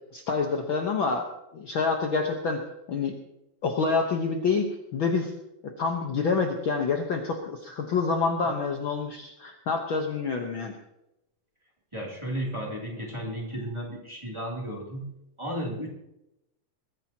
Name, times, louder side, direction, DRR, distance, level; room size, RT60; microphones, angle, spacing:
voice 1, 0.1-1.3 1.5-2.6 2.9-3.1 3.6-4.7 4.9-5.3 5.6-10.7, left 4 dB, 70° left, 2 dB, 1.2 m, -27 dB
voice 2, 11.9-15.1 15.4-15.9, equal, 10° right, -3 dB, 2.5 m, -34 dB
21.5 x 15.0 x 2.9 m, 0.88 s
omnidirectional pair, 4.0 m